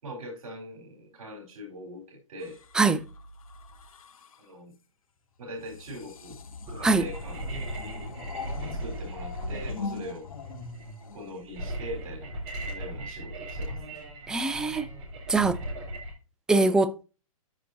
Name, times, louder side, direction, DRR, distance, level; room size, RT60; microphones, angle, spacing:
voice 1, 0.0-2.6 4.4-4.7 5.4-6.4 6.7-7.7 8.6-10.3 11.1-12.3 12.6-13.8, equal, 70° right, 3.9 m, -41 dB
sound 1, 2.4-4.5 5.6-12.0 12.9-13.2, left 4 dB, 70° left, 2.6 m, -42 dB
sound 2, 6.7-16.1, right 1 dB, 30° right, 3.8 m, -37 dB
voice 2, 14.3-14.9 15.3-15.6 16.5-17.0, right 3 dB, 5° right, 0.3 m, -23 dB
13.0 x 5.1 x 2.7 m
hypercardioid pair, 145°, 18 cm